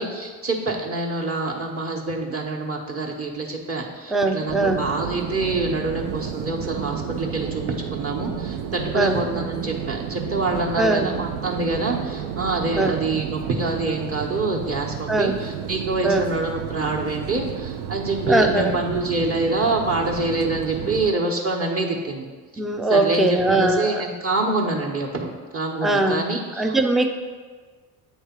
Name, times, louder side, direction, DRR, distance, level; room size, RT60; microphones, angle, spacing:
voice 1, 0.0-7.6 7.9-22.3 22.9-26.8, right 2 dB, 30° right, -1 dB, 1.1 m, -26 dB
voice 2, 4.1-4.8 8.9-9.2 10.8-11.1 12.8-12.9 15.1-15.4 16.0-16.2 18.3-18.7 22.6-24.0 25.8-26.2 26.6-27.1, right 2 dB, ahead, 5 dB, 0.4 m, -20 dB
sound 1, 4.5-21.1, right 9 dB, 75° right, 0.6 m, -31 dB
8.2 x 3.3 x 4.4 m, 1.5 s
supercardioid pair, 70°, 45 cm